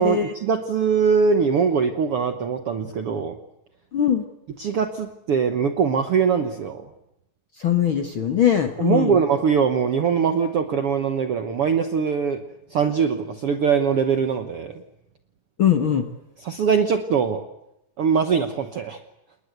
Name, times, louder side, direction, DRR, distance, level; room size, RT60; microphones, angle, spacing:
voice 1, 0.0-3.3 4.6-6.8 8.8-12.4 12.7-14.7 16.4-17.4 18.0-19.0, right 6 dB, 65° right, 7 dB, 1.5 m, -22 dB
voice 2, 3.9-4.2 7.6-9.2 15.6-16.1, left 9 dB, 55° left, 6 dB, 1.5 m, -21 dB
29.0 x 20.0 x 8.1 m, 0.88 s
omnidirectional pair, 4.2 m